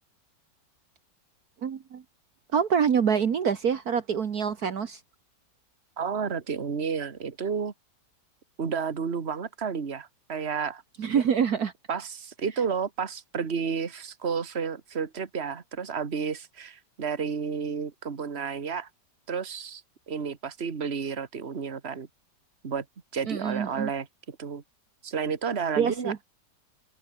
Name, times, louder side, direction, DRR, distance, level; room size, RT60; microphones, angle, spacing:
voice 1, 1.6-2.0 2.5-5.0 11.0-11.7 23.3-23.9 25.8-26.2, right 7 dB, 60° right, 1.8 m, -26 dB
voice 2, 6.0-7.7 8.6-10.8 11.9-18.9 19.3-22.1 22.6-22.9 23.1-24.6 25.0-26.1, right 6 dB, 40° right, 2.0 m, -31 dB
open air
omnidirectional pair, 1.8 m